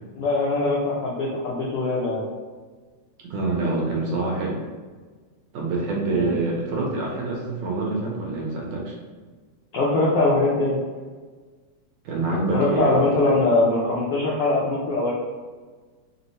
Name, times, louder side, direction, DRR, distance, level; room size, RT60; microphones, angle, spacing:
voice 1, 0.2-2.2 6.1-6.3 9.7-10.8 12.5-15.1, left 2 dB, 80° left, -6 dB, 1.3 m, -22 dB
voice 2, 3.3-4.6 5.5-8.9 12.1-13.0, right 3 dB, 70° right, -3 dB, 1.8 m, -26 dB
5.2 x 2.1 x 4.0 m, 1.4 s
omnidirectional pair, 3.5 m